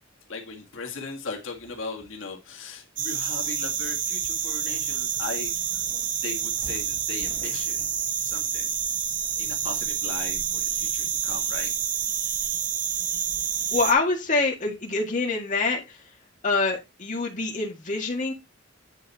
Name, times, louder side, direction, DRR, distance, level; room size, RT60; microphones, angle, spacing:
voice 1, 0.3-5.7 6.2-7.9 8.2-8.8 9.4-11.7, left 4 dB, 80° left, 1.8 m, -38 dB
sound 1, 3.0-13.9, right 8 dB, 45° right, 1.0 m, -28 dB
voice 2, 13.7-16.0 16.4-18.3, left 3 dB, 40° left, 1.8 m, -25 dB
9.3 x 4.4 x 4.1 m
head